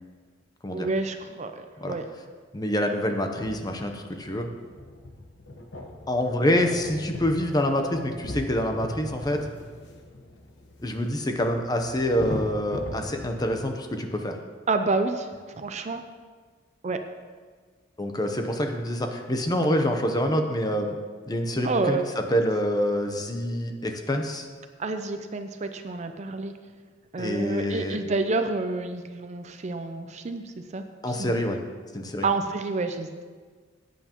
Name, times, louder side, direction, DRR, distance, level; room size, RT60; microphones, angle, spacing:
voice 1, 0.7-1.5 1.8-2.0 14.7-15.3 15.5-16.0 16.8-17.0 21.6-22.0 24.8-26.5 27.1-30.4 30.7-30.8 31.2-31.4 32.2-33.2, right 3 dB, 35° right, 7 dB, 0.5 m, -28 dB
voice 2, 2.5-4.5 6.1-9.5 10.8-14.4 18.0-20.9 21.3-24.5 27.2-28.0 31.0-31.6 31.9-32.3, equal, 20° left, 4 dB, 0.8 m, -26 dB
sound 1, 3.3-13.6, left 1 dB, 65° left, 1.2 m, -39 dB
14.5 x 9.1 x 3.0 m, 1.5 s
head